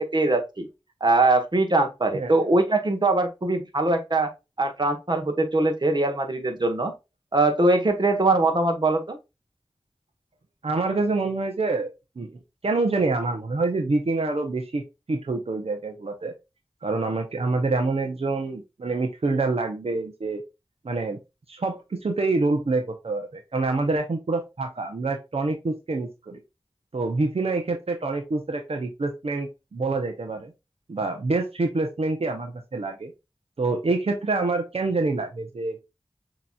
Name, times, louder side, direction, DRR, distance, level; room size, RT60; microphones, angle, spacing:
voice 1, 0.1-0.7 1.0-4.3 4.6-6.9 7.3-9.2, right 2 dB, 50° right, 1.2 m, -22 dB
voice 2, 10.6-14.8 15.1-16.3 16.8-20.4 20.8-21.2 21.5-26.4 26.9-30.5 30.9-33.1 33.6-35.8, right 3 dB, 80° right, 0.7 m, -26 dB
6.8 x 3.0 x 2.3 m
wide cardioid pair, 50°, 10 cm